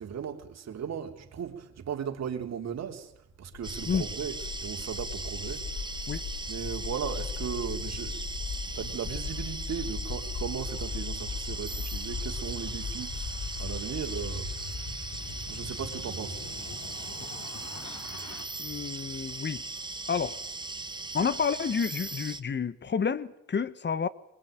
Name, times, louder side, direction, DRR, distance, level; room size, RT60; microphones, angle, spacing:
voice 1, 0.0-3.1 3.4-6.1 6.5-8.3 8.7-14.8 15.5-16.5 18.8-19.0, right 7 dB, 60° right, 3.5 m, -37 dB
sound 1, 3.5-18.4, left 5 dB, 65° left, 3.5 m, -38 dB
sound 2, 3.6-22.4, right 3 dB, 15° right, 1.1 m, -39 dB
voice 2, 18.6-19.6 20.1-20.4 21.1-24.1, left 6 dB, 35° left, 1.4 m, -29 dB
23.0 x 21.5 x 9.2 m
cardioid pair, 90°, 30 cm